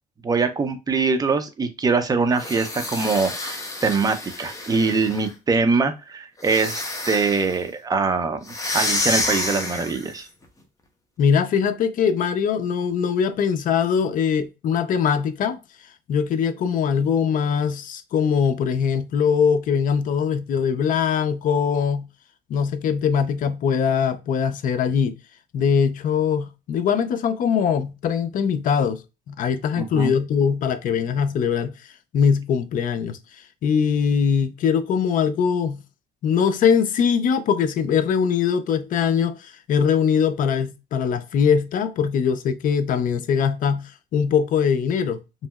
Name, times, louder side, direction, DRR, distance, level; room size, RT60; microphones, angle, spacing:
voice 1, 0.2-3.3 3.8-10.3 29.8-30.1, right 4 dB, 20° right, 0.5 m, -23 dB
sound 1, 2.3-5.3 6.4-7.6 8.5-10.2, left 2 dB, 20° left, 0.7 m, -29 dB
voice 2, 11.2-15.6 16.1-22.1 22.5-25.1 25.5-29.0 29.3-31.7 32.1-33.2 33.6-35.8 36.2-45.5, left 7 dB, 55° left, 0.5 m, -22 dB
3.0 x 2.7 x 2.3 m
cardioid pair, 110°, 17 cm